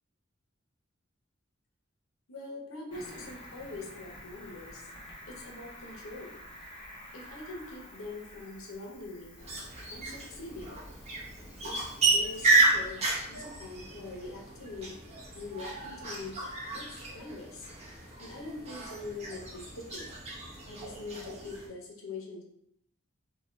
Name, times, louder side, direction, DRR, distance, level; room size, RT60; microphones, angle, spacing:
voice 1, 2.3-4.9 5.3-6.4 7.1-9.4 9.9-10.8 11.6-15.0 15.3-16.4 16.7-17.7 18.2-20.1 20.7-22.4, left 3 dB, 85° left, 0 dB, 0.8 m, -43 dB
Cricket, 2.9-12.4, left 1 dB, 25° left, 0.7 m, -50 dB
sound 1, 9.4-21.7, right 3 dB, 30° right, 0.8 m, -32 dB
2.8 x 2.1 x 3.1 m, 0.71 s
head